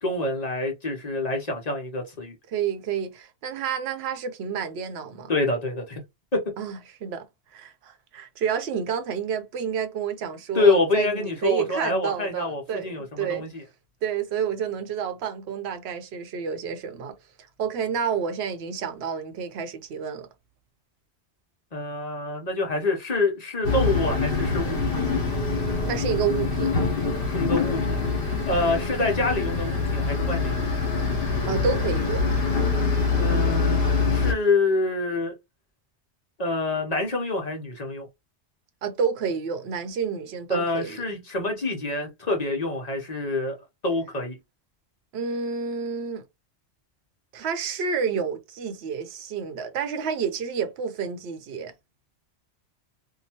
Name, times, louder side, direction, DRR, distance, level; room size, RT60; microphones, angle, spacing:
voice 1, 0.0-2.4 5.3-6.0 6.3-6.5 10.5-13.6 21.7-24.8 27.3-28.0 28.5-30.7 33.1-33.8 34.1-35.3 36.4-38.1 40.5-43.6 43.8-44.4, left 2 dB, 40° left, 0.8 m, -26 dB
voice 2, 2.5-5.3 6.6-7.3 7.5-13.5 14.0-17.2 17.6-20.3 25.8-26.7 31.5-32.3 38.8-41.1 45.1-46.2 47.3-51.7, right 7 dB, 70° right, 0.9 m, -29 dB
sound 1, 23.6-34.3, left 4 dB, 60° left, 1.1 m, -24 dB
2.8 x 2.2 x 2.8 m
omnidirectional pair, 1.1 m